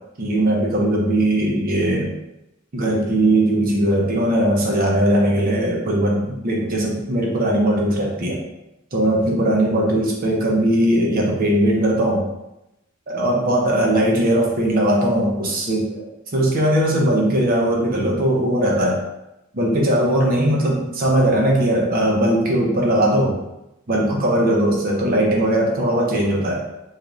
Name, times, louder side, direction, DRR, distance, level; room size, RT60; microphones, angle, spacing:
voice 1, 0.2-2.1 2.7-8.4 8.9-12.3 13.1-16.0 16.3-19.0 19.5-23.4 23.9-26.6, right 1 dB, 45° right, -2 dB, 0.6 m, -19 dB
2.5 x 2.4 x 3.1 m, 0.92 s
head